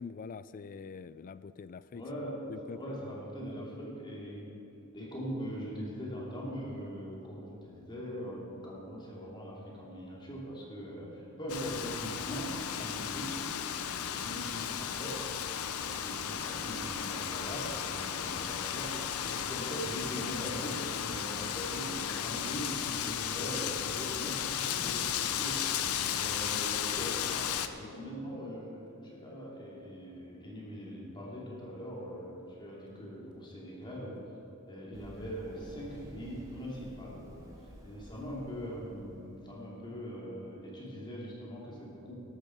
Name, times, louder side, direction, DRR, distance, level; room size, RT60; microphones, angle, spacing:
voice 1, 0.0-2.0 2.5-3.0 3.5-3.7 19.3-19.4 25.9-26.1 27.8-27.9, left 5 dB, 40° left, 15 dB, 0.3 m, -45 dB
voice 2, 1.9-2.4 2.7-4.5 4.9-13.3 14.0-15.2 15.8-25.6 26.1-34.2 34.7-42.1, equal, 20° left, -4 dB, 2.9 m, -41 dB
Wind, 11.5-27.7, left 9 dB, 80° left, 0.6 m, -35 dB
Run, 34.9-39.7, equal, 15° right, 2.0 m, -52 dB
12.5 x 12.0 x 4.6 m, 2.8 s
head